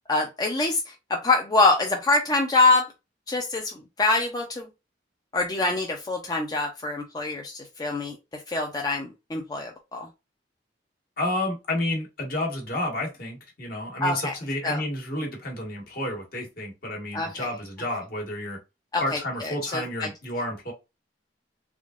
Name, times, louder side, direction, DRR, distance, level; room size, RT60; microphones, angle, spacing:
voice 1, 0.1-2.9 3.3-4.7 5.3-10.1 14.0-14.3 14.6-14.8 17.1-17.5 18.9-20.1, left 3 dB, 20° left, 2 dB, 0.5 m, -25 dB
voice 2, 11.2-18.6 19.0-20.7, left 1 dB, 55° left, 1 dB, 1.4 m, -30 dB
3.6 x 3.6 x 2.4 m, 0.25 s
head